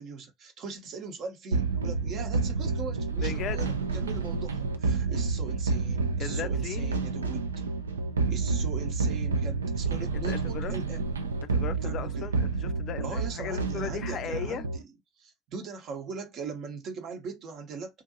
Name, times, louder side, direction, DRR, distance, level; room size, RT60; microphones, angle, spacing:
voice 1, 0.0-7.5 8.3-11.1 11.8-12.3 13.0-14.8 15.2-18.0, right 5 dB, 50° right, 0.9 m, -40 dB
sound 1, 1.5-14.8, right 4 dB, 85° right, 0.3 m, -29 dB
voice 2, 3.2-3.7 6.2-7.0 10.1-10.7 11.4-14.7, left 8 dB, 50° left, 0.4 m, -37 dB
2.5 x 2.5 x 2.6 m
hypercardioid pair, 65°, 0 cm